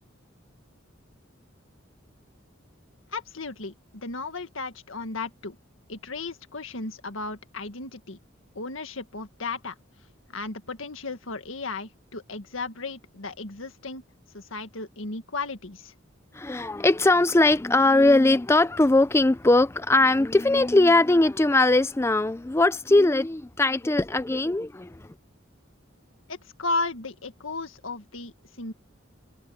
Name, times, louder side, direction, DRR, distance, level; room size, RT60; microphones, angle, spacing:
voice 1, 3.1-5.6 5.9-8.2 8.6-9.8 10.3-14.0 14.3-15.9 26.3-28.7, left 3 dB, 85° left, 1.8 m, -34 dB
voice 2, 16.3-25.1, left 2 dB, 15° left, 0.4 m, -20 dB
head